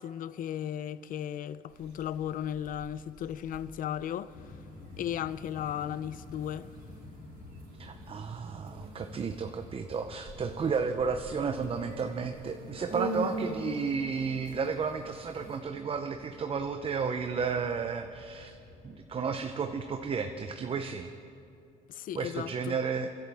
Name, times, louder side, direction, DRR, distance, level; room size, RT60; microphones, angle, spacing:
voice 1, 0.0-4.3 5.0-6.7 21.9-22.8, left 10 dB, 55° left, 0.5 m, -35 dB
sound 1, 1.7-15.6, right 2 dB, 60° right, 3.9 m, -43 dB
sound 2, 4.3-21.0, left 2 dB, 85° left, 3.1 m, -51 dB
voice 2, 7.8-18.6 18.8-21.1 22.1-23.1, right 5 dB, 35° right, 0.7 m, -33 dB
29.5 x 11.5 x 3.5 m
cardioid pair, 110°, 17 cm